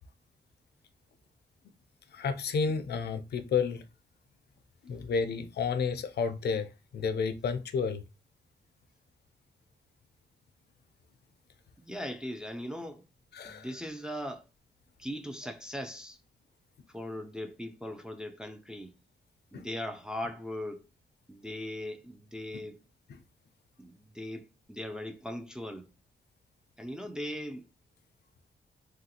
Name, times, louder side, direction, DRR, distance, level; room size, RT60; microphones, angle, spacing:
voice 1, 2.1-3.8 4.9-6.7 6.9-8.0 13.3-13.7 19.5-19.6, left 5 dB, 65° left, 0.4 m, -31 dB
voice 2, 11.8-13.0 13.4-14.4 15.0-16.2 16.9-19.0 19.5-20.8 21.3-22.8 23.8-25.9 26.8-27.7, left 1 dB, 5° right, 0.4 m, -39 dB
3.1 x 2.4 x 2.8 m
cardioid pair, 100°, 18 cm